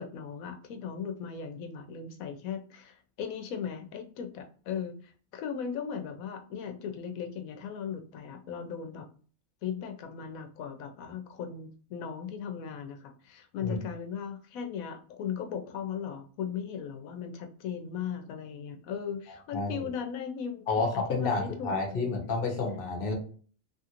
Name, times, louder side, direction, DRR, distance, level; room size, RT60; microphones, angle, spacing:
voice 1, 0.0-9.1 9.6-22.3, left 7 dB, 85° left, 6 dB, 1.0 m, -38 dB
voice 2, 19.5-19.9 20.7-23.1, left 3 dB, 45° left, 1 dB, 1.0 m, -30 dB
3.1 x 2.4 x 2.8 m, 0.41 s
omnidirectional pair, 1.4 m